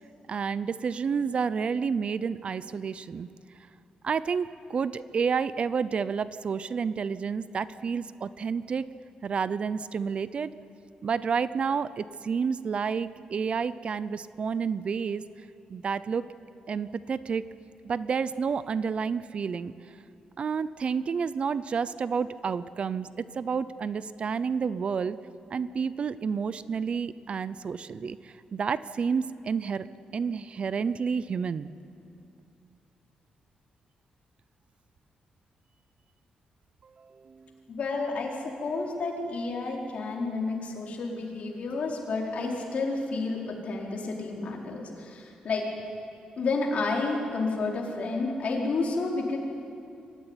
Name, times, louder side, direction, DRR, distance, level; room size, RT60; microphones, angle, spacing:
voice 1, 0.3-3.3 4.0-8.9 9.2-10.5 11.0-15.3 15.7-16.3 16.7-17.5 17.8-19.7 20.4-25.2 25.5-29.9 30.1-31.7 37.0-37.5, right 6 dB, 45° right, 16 dB, 0.6 m, -30 dB
voice 2, 37.7-38.3 38.6-45.7 46.4-49.4, left 3 dB, 60° left, -1 dB, 4.4 m, -30 dB
24.0 x 14.5 x 9.8 m, 2.6 s
cardioid pair, 115°, 3 cm